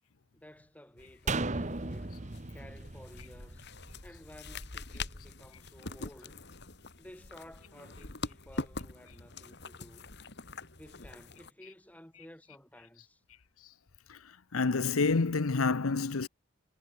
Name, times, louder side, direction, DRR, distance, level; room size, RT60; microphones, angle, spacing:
voice 1, 0.3-2.1 2.5-3.7 4.0-6.4 7.0-10.1 10.8-13.2, equal, 5° left, 3.0 m, -54 dB
sound 1, 1.0-11.5, left 3 dB, 50° left, 2.5 m, -44 dB
sound 2, 1.3-4.6 4.9-5.0, right 3 dB, 35° right, 1.2 m, -36 dB
voice 2, 14.1-16.3, left 4 dB, 75° left, 0.8 m, -29 dB
head